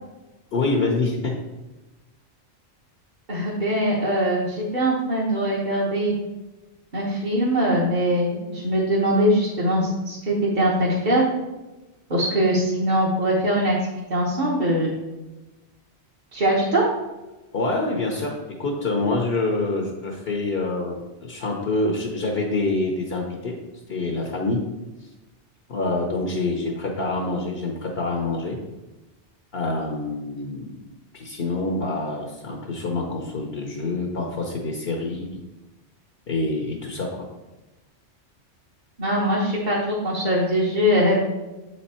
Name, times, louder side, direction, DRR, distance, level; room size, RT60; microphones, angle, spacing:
voice 1, 0.5-1.3 17.5-18.3 18.6-23.5 23.9-24.6 25.7-28.6 29.5-30.6 31.1-35.3 36.3-37.3, left 2 dB, 60° left, 0 dB, 1.1 m, -26 dB
voice 2, 3.3-6.1 6.9-11.2 12.1-13.7 14.1-14.9 16.3-16.8 39.0-41.2, equal, 45° right, -6 dB, 1.2 m, -22 dB
7.6 x 4.4 x 4.2 m, 1.1 s
omnidirectional pair, 1.2 m